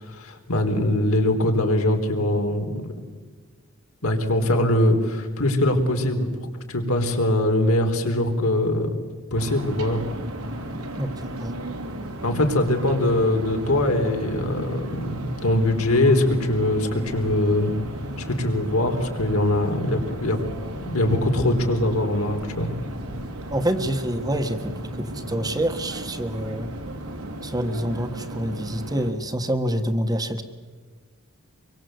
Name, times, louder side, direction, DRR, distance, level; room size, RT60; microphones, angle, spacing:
voice 1, 0.1-2.8 4.0-6.3 6.7-9.0 9.3-10.0 12.2-17.7 18.3-20.4 20.9-22.7, left 1 dB, 75° left, 4 dB, 3.8 m, -22 dB
sound 1, 9.4-29.1, right 1 dB, 85° right, 3.4 m, -35 dB
voice 2, 11.0-11.6 23.5-26.7 27.4-30.4, right 1 dB, 20° right, 7 dB, 1.5 m, -27 dB
24.5 x 23.5 x 8.0 m, 1.5 s
head